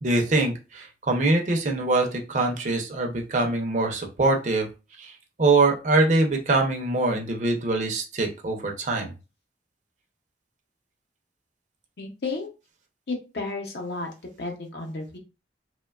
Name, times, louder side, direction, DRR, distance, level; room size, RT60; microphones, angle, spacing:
voice 1, 0.0-4.7 5.0-5.1 5.4-9.1, right 2 dB, 40° right, 2 dB, 0.5 m, -23 dB
voice 2, 12.0-12.5 13.1-14.1 14.4-15.2, left 3 dB, 65° left, 2 dB, 0.7 m, -32 dB
2.9 x 2.2 x 2.2 m, 0.30 s
head